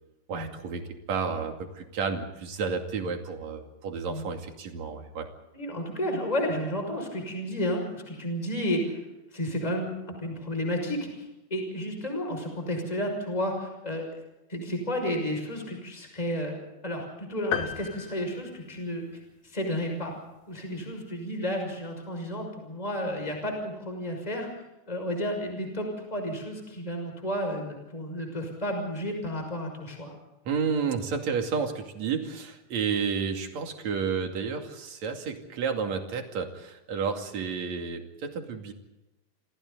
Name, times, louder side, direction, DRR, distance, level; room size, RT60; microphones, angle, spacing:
voice 1, 0.3-5.3 30.5-38.7, right 5 dB, 55° right, 4 dB, 3.6 m, -31 dB
voice 2, 5.5-9.0 9.3-9.9 10.2-11.2 11.5-14.1 14.5-16.6 16.8-19.0 19.4-20.1 20.5-24.5 24.9-30.1, equal, 10° left, 3 dB, 5.9 m, -32 dB
sound 1, 17.5-19.3, left 8 dB, 75° left, 3.1 m, -35 dB
28.5 x 27.5 x 4.0 m, 0.99 s
omnidirectional pair, 3.9 m